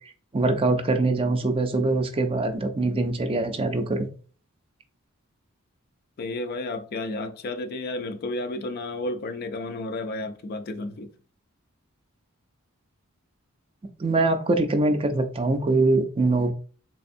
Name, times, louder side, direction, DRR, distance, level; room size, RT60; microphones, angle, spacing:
voice 1, 0.3-4.1 14.0-16.5, right 2 dB, 25° right, 0.4 m, -23 dB
voice 2, 6.2-11.1, left 2 dB, 45° left, 0.4 m, -32 dB
3.4 x 3.2 x 2.6 m
head